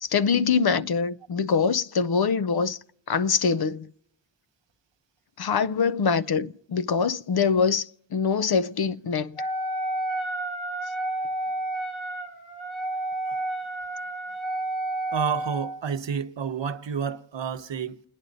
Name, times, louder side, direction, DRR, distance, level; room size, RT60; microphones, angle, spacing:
voice 1, 0.0-2.8 3.1-3.9 5.4-9.4, left 5 dB, 50° left, 0.6 m, -24 dB
Wind instrument woodwind instrument, 9.4-15.8, right 1 dB, 75° left, 3.5 m, -30 dB
voice 2, 15.1-18.0, right 7 dB, 65° right, 0.9 m, -30 dB
29.5 x 10.0 x 4.0 m
wide cardioid pair, 110°, 47 cm